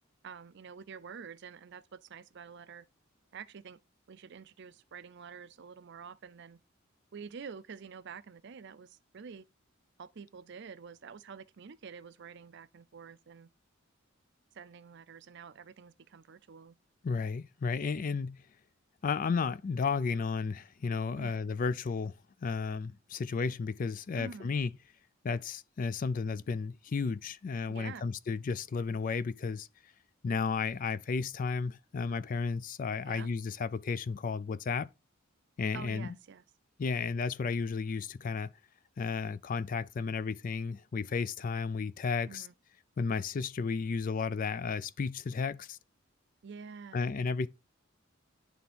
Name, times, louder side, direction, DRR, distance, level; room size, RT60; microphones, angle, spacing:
voice 1, 0.2-2.9 3.3-3.8 4.1-6.6 7.1-9.4 10.0-13.5 14.5-16.8 21.2-21.4 24.2-24.5 27.7-28.1 33.0-33.3 35.7-36.4 42.3-42.5 46.4-47.1, right 6 dB, 60° right, 0.5 m, -48 dB
voice 2, 17.0-18.4 19.0-22.1 22.4-24.7 25.2-29.7 30.2-34.9 35.6-36.1 36.8-38.5 39.0-42.5 43.0-45.8 46.9-47.5, left 5 dB, 40° left, 0.4 m, -33 dB
9.2 x 3.5 x 4.2 m
head